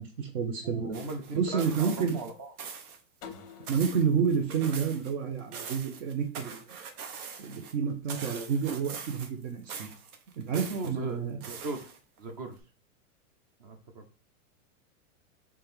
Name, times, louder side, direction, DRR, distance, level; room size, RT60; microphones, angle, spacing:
voice 1, 0.0-1.0 1.3-2.2 3.7-6.6 7.4-9.9 10.4-11.4, right 6 dB, 60° right, 3 dB, 1.0 m, -29 dB
voice 2, 0.6-2.5 3.3-3.5 10.5-11.9 12.2-12.6 13.6-14.0, right 3 dB, 30° right, 5 dB, 0.5 m, -39 dB
sound 1, 0.9-2.3 2.6-3.0 3.3-5.1 5.4-7.7 8.1-9.4 9.7-10.9 11.4-12.2 12.6-12.7, right 6 dB, 85° right, 1.0 m, -42 dB
sound 2, 3.2-6.0, left 7 dB, 25° left, 0.5 m, -51 dB
4.3 x 3.4 x 3.6 m, 0.36 s
supercardioid pair, 165°, 43 cm